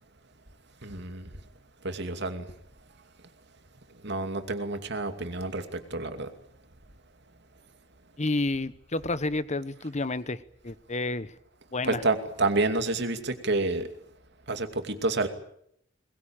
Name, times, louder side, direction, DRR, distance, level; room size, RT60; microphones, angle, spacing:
voice 1, 0.8-1.3 1.8-2.4 4.0-6.3 11.8-13.9 14.5-15.3, right 2 dB, 60° right, 7 dB, 2.6 m, -29 dB
voice 2, 8.2-11.3 11.7-12.0, left 2 dB, 35° left, 15 dB, 1.1 m, -30 dB
22.0 x 21.0 x 8.9 m, 0.72 s
head